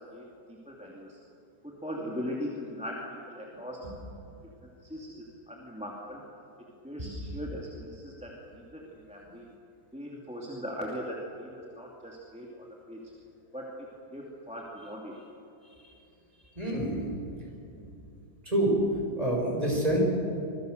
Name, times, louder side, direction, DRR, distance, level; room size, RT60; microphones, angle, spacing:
voice 1, 0.7-1.2 1.6-3.9 4.8-6.2 6.8-9.4 9.9-13.0 13.5-13.9 14.1-15.1, equal, 5° right, -3 dB, 2.5 m, -39 dB
voice 2, 7.0-7.4 15.6-15.9 16.5-17.1 17.4-17.5 18.4-18.7 19.2-20.0, right 1 dB, 20° right, -1 dB, 6.3 m, -29 dB
25.5 x 22.5 x 6.7 m, 2.8 s
omnidirectional pair, 1.8 m